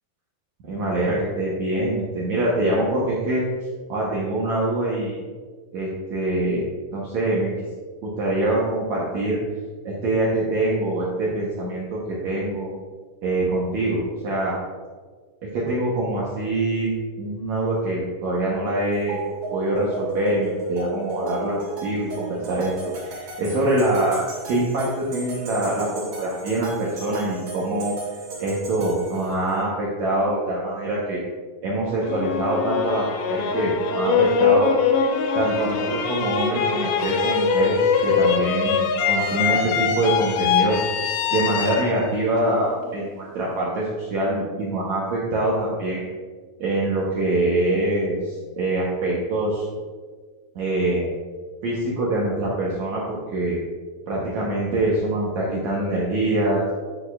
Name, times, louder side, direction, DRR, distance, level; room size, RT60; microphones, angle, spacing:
voice 1, 0.6-3.4 3.9-5.2 5.7-6.6 6.9-7.5 8.0-9.4 9.8-12.7 13.2-14.5 15.5-19.2 19.5-21.5 21.8-22.7 23.0-27.9 28.4-31.2 31.6-34.7 35.3-40.8 41.3-46.1 46.6-49.7 50.5-51.1 51.6-53.6 54.1-56.6, right 1 dB, 75° right, -5 dB, 1.7 m, -24 dB
sound 1, 18.9-29.5, right 3 dB, 55° right, 3.7 m, -34 dB
sound 2, 32.0-43.1, left 6 dB, 80° left, 2.5 m, -22 dB
10.5 x 6.3 x 2.4 m, 1.5 s
omnidirectional pair, 4.7 m